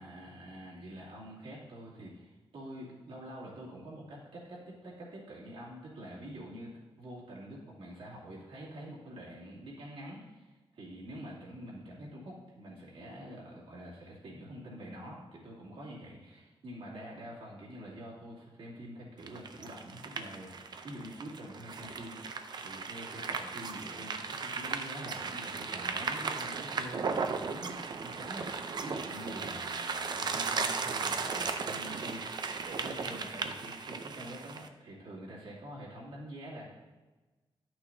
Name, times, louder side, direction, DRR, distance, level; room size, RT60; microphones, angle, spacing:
voice 1, 0.0-6.7 7.0-22.2 22.6-36.6, right 1 dB, 70° right, -6 dB, 2.5 m, -46 dB
sound 1, 19.2-34.7, right 5 dB, 50° right, 0.5 m, -36 dB
11.0 x 6.2 x 2.7 m, 1.2 s
wide cardioid pair, 125°, 10 cm